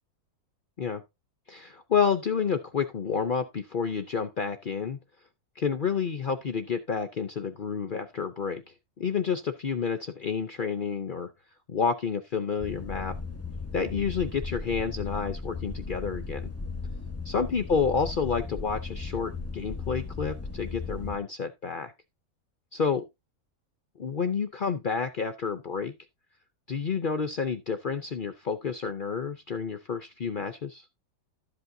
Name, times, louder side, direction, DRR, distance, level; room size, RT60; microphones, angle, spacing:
voice 1, 1.5-5.0 5.6-8.6 9.0-11.3 11.7-13.2 13.7-16.5 17.2-21.9 22.7-23.1 24.0-26.0 26.7-30.8, left 6 dB, 50° left, 0.6 m, -29 dB
sound 1, 12.6-21.2, left 4 dB, 10° left, 0.9 m, -36 dB
12.5 x 7.9 x 2.6 m
omnidirectional pair, 1.5 m